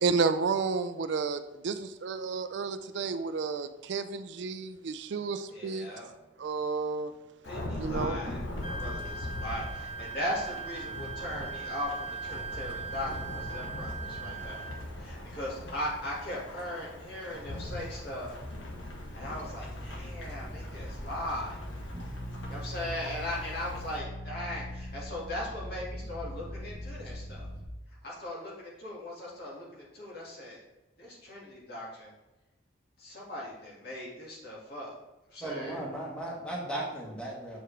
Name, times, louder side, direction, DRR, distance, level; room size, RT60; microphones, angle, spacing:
voice 1, 0.0-5.9 6.4-7.1 7.8-8.2, right 4 dB, 70° right, 11 dB, 0.4 m, -31 dB
voice 2, 5.5-6.1 7.4-14.6 15.0-18.3 19.1-21.6 22.5-27.5 28.0-30.6 31.0-32.1 33.0-35.0 35.3-35.8, left 1 dB, 55° left, -4 dB, 2.1 m, -38 dB
Thunderstorm / Rain, 7.4-24.0, left 1 dB, 85° left, 1.1 m, -41 dB
Wind instrument woodwind instrument, 8.6-14.8, right 5 dB, 35° left, 0.5 m, -40 dB
sound 1, 19.1-27.7, equal, 25° right, 1.0 m, -41 dB
voice 3, 35.4-37.6, right 1 dB, 5° left, -4 dB, 1.4 m, -36 dB
7.1 x 4.7 x 3.4 m, 1.0 s
head